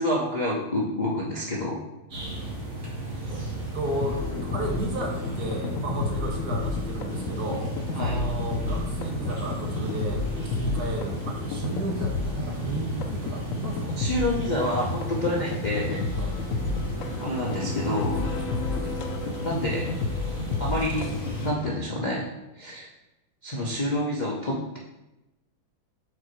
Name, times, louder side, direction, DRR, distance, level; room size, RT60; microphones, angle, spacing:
voice 1, 0.0-1.8 7.9-8.2 13.9-16.0 17.2-18.3 19.4-19.9 20.6-21.1 21.4-22.3 22.5-22.9 23.4-24.8, left 1 dB, 45° left, -4 dB, 0.5 m, -28 dB
sound 1, 2.1-21.5, right 1 dB, 35° right, 1.9 m, -35 dB
voice 2, 3.3-7.7 8.0-14.1 16.1-16.4 18.3-18.8 23.5-23.7, right 2 dB, 55° right, 0 dB, 1.3 m, -33 dB
sound 2, 3.9-21.8, left 4 dB, 90° left, 0.7 m, -31 dB
7.2 x 3.9 x 4.6 m, 0.96 s
omnidirectional pair, 2.3 m